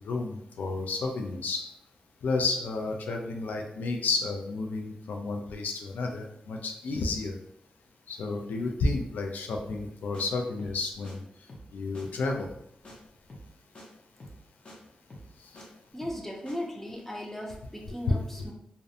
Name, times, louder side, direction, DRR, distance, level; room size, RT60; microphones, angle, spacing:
voice 1, 0.0-1.6 2.2-7.3 8.1-11.2 11.7-12.5, left 3 dB, 90° left, 3 dB, 0.3 m, -31 dB
sound 1, 9.7-9.9 10.1-10.2 10.6-10.8 11.0-11.1 11.5-11.7 11.9-12.0 12.4-12.6 12.8-13.0 13.3-13.5 13.7-13.9 14.2-14.4 14.6-14.8 15.1-15.7 16.0-16.2 16.5-16.6, equal, 40° left, 0.7 m, -47 dB
voice 2, 15.9-18.5, left 1 dB, 10° left, -1 dB, 0.5 m, -37 dB
2.5 x 2.1 x 2.6 m, 0.74 s
wide cardioid pair, 95°, 3 cm